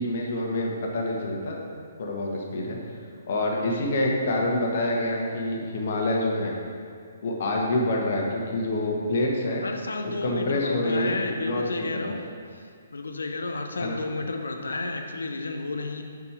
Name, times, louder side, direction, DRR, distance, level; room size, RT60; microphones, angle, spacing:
voice 1, 0.0-1.6 2.0-3.0 3.3-6.5 7.2-9.6 10.2-11.6 11.9-12.1 13.8-14.0, left 1 dB, 50° left, -1 dB, 1.3 m, -27 dB
voice 2, 9.6-12.2 12.9-16.0, left 3 dB, 70° left, 4 dB, 0.7 m, -31 dB
7.0 x 5.3 x 4.7 m, 2.2 s
figure-of-eight pair, 130°, 0 cm